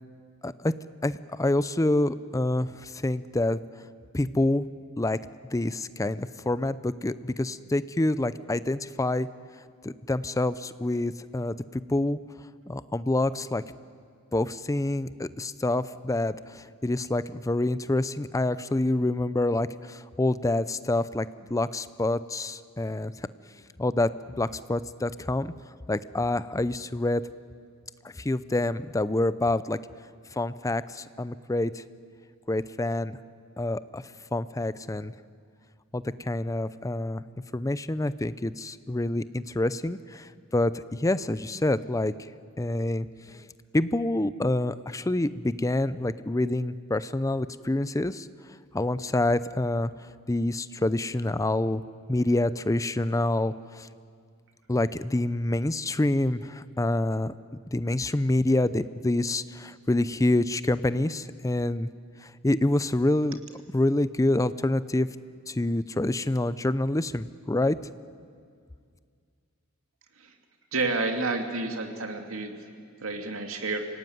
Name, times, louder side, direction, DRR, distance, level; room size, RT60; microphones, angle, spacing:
voice 1, 0.4-0.7 1.0-3.6 4.1-4.7 5.0-5.2 5.5-9.3 9.8-12.2 12.7-13.6 14.3-23.3 23.8-24.1 24.4-25.5 25.9-27.2 28.0-29.8 30.3-31.8 32.5-33.2 33.6-34.0 34.3-35.1 35.9-37.2 37.5-42.3 42.6-43.5 43.7-48.3 48.7-49.9 50.3-51.8 52.1-53.9 54.7-57.3 57.7-61.9 62.2-63.4 63.7-65.1 65.5-67.8, left 2 dB, 15° left, 15 dB, 0.5 m, -27 dB
voice 2, 70.7-72.5 73.0-73.9, right 3 dB, 80° right, 4 dB, 2.5 m, -30 dB
26.0 x 18.0 x 9.3 m, 2.2 s
head